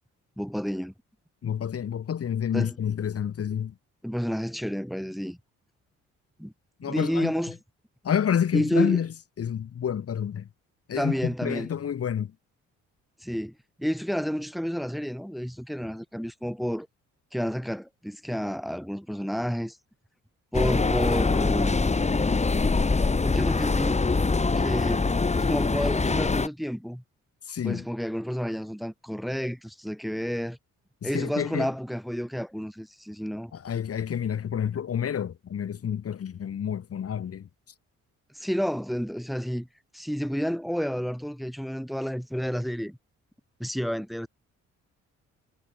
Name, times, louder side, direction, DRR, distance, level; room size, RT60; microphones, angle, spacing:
voice 1, 0.4-0.9 2.5-2.8 4.0-5.4 6.4-6.5 6.8-7.6 8.5-9.0 11.0-11.7 13.2-13.5 13.8-16.9 17.3-19.8 20.5-21.9 23.2-24.0 24.6-25.1 25.3-27.0 27.6-30.6 31.0-33.5 38.3-39.7 39.9-43.0 43.6-44.3, equal, ahead, 2.4 m, -30 dB
voice 2, 1.4-3.7 6.8-7.3 8.0-9.1 9.4-10.5 10.9-12.3 27.5-27.9 31.0-31.7 33.5-37.5, left 8 dB, 50° left, 2.0 m, -29 dB
sound 1, 20.5-26.5, left 3 dB, 20° left, 2.4 m, -24 dB
cardioid pair, 90°, 30 cm